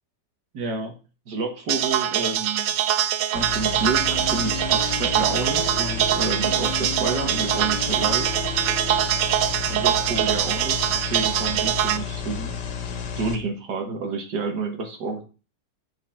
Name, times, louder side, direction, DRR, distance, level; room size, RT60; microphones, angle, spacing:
voice 1, 0.5-0.9 1.3-2.8 3.3-8.3 9.7-12.5 13.2-15.2, right 4 dB, 90° right, 3 dB, 2.0 m, -29 dB
sound 1, 1.7-12.0, right 11 dB, 65° right, 0.9 m, -23 dB
sound 2, 3.4-13.4, left 7 dB, 90° left, 2.0 m, -32 dB
sound 3, 3.8-9.0, equal, 40° left, 0.3 m, -37 dB
7.7 x 4.8 x 5.7 m, 0.34 s
omnidirectional pair, 1.8 m